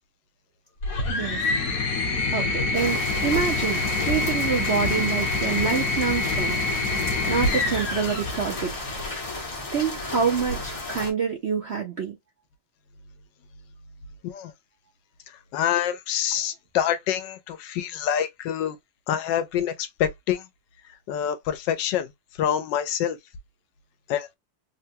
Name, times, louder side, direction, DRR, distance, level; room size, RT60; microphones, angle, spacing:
sound 1, 0.8-9.2 10.4-11.1, left 3 dB, 55° left, 1.2 m, -26 dB
voice 1, 1.1-1.5 2.3-6.6 7.3-8.7 9.7-12.2, right 6 dB, 60° right, 0.7 m, -27 dB
sound 2, 2.7-11.1, left 2 dB, 30° left, 0.6 m, -34 dB
voice 2, 15.5-18.7 19.1-20.4 21.1-22.1 22.4-23.2 24.1-24.4, left 10 dB, 80° left, 1.2 m, -26 dB
3.4 x 2.2 x 2.7 m
omnidirectional pair, 2.0 m